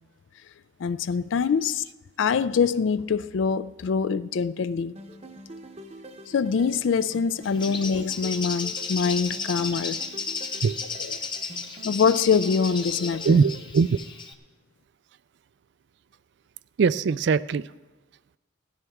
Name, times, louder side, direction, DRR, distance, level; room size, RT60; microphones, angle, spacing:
voice 1, 0.8-1.8 2.2-4.9 6.3-10.0 11.8-13.4, left 6 dB, 65° left, 0.4 m, -24 dB
sound 1, 5.0-13.7, right 1 dB, 30° right, 0.8 m, -45 dB
Bird, 7.4-14.3, left 4 dB, 25° left, 0.8 m, -34 dB
voice 2, 13.2-14.0 16.8-17.6, right 5 dB, 60° right, 0.3 m, -21 dB
16.5 x 13.0 x 3.6 m
head